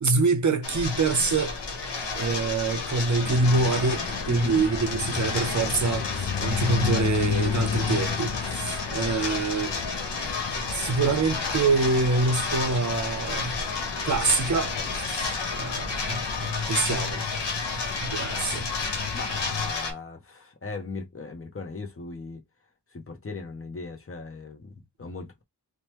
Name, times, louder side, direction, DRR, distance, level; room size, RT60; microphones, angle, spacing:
voice 1, 0.0-1.5 2.2-9.8 10.6-13.6 14.1-16.2 16.5-17.3 18.0-18.7, right 4 dB, 45° right, 0.6 m, -26 dB
sound 1, 0.6-19.9, left 4 dB, 80° left, 1.0 m, -31 dB
sound 2, 3.2-19.7, left 7 dB, 65° left, 0.5 m, -34 dB
voice 2, 4.3-4.7 19.1-22.4 22.9-24.7 25.0-25.4, left 3 dB, 30° left, 0.8 m, -38 dB
2.9 x 2.2 x 3.1 m
cardioid pair, 55°, 42 cm